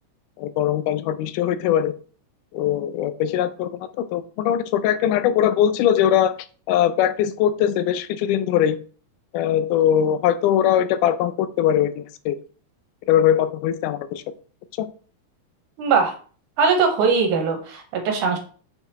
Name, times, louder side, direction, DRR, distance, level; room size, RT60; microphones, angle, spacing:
voice 1, 0.4-1.9 2.5-6.4 6.7-8.8 9.3-12.4 13.1-14.2 14.8-14.9, left 10 dB, 90° left, 13 dB, 2.1 m, -21 dB
voice 2, 15.8-16.1 16.6-18.4, right 5 dB, 75° right, 4 dB, 2.7 m, -20 dB
6.9 x 5.5 x 3.0 m, 0.41 s
omnidirectional pair, 3.6 m